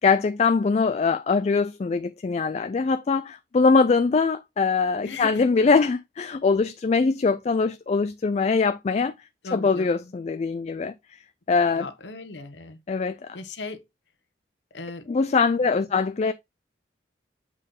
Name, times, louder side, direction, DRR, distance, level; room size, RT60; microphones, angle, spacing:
voice 1, 0.0-9.1 9.5-10.9 11.5-11.9 12.9-13.3 15.1-16.3, left 4 dB, 35° left, 0.3 m, -22 dB
voice 2, 5.0-5.5 9.4-10.1 11.7-12.8 13.3-13.8 14.7-15.1, left 3 dB, 80° left, 1.0 m, -37 dB
7.3 x 3.9 x 3.7 m
head